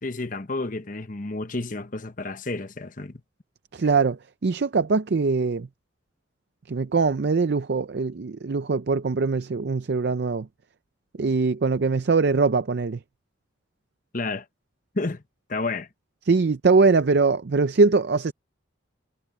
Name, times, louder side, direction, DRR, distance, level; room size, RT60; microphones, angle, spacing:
voice 1, 0.0-3.2 14.1-14.4 14.9-15.2 15.5-15.9, left 3 dB, 40° left, 1.0 m, -30 dB
voice 2, 3.7-5.7 6.7-10.5 11.2-13.0 16.3-18.3, right 4 dB, 55° right, 0.5 m, -22 dB
head